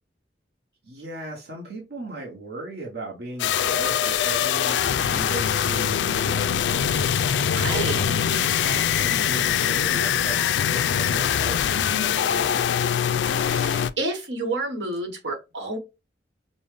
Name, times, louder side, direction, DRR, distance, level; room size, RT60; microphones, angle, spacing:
voice 1, 0.8-7.2 7.7-12.6, right 1 dB, 65° right, 1.0 m, -37 dB
sound 1, 3.4-13.9, left 9 dB, 80° left, 0.3 m, -23 dB
voice 2, 7.5-8.0 13.5-15.8, right 2 dB, 85° right, 1.2 m, -29 dB
5.3 x 2.1 x 3.2 m
head